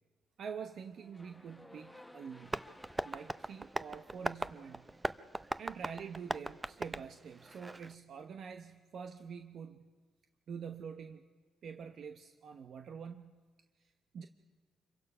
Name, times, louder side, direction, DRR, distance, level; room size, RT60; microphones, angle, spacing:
voice 1, 0.4-2.6 3.0-4.9 5.6-9.9 10.5-11.2 11.6-13.4 13.8-14.3, right 6 dB, 60° right, 6 dB, 1.0 m, -46 dB
sound 1, 0.9-5.1, left 1 dB, 5° left, 1.5 m, -58 dB
Tap, 2.5-7.9, right 2 dB, 15° right, 0.6 m, -40 dB
26.5 x 23.0 x 5.6 m, 1.4 s
cardioid pair, 90°, 0 cm